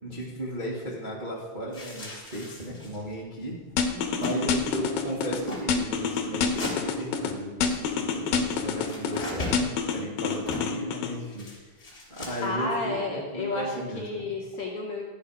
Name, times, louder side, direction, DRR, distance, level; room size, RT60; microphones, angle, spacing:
voice 1, 0.0-3.6 4.1-11.5 12.1-13.0 13.3-14.2, right 1 dB, 20° right, -5 dB, 1.4 m, -35 dB
sound 1, 1.7-3.1 3.4-3.5 3.7-4.4 4.6-4.8 5.2-5.7 6.6-6.8 8.5-9.7 10.4-10.8 11.3-12.6, left 1 dB, 20° left, 2.9 m, -38 dB
sound 2, 3.8-5.4 5.7-7.3 7.6-9.2 9.5-11.1, left 6 dB, 70° left, 2.7 m, -27 dB
voice 2, 3.9-4.5 12.4-15.0, left 3 dB, 45° left, -3 dB, 2.5 m, -32 dB
13.0 x 10.0 x 5.0 m, 1.3 s
omnidirectional pair, 4.6 m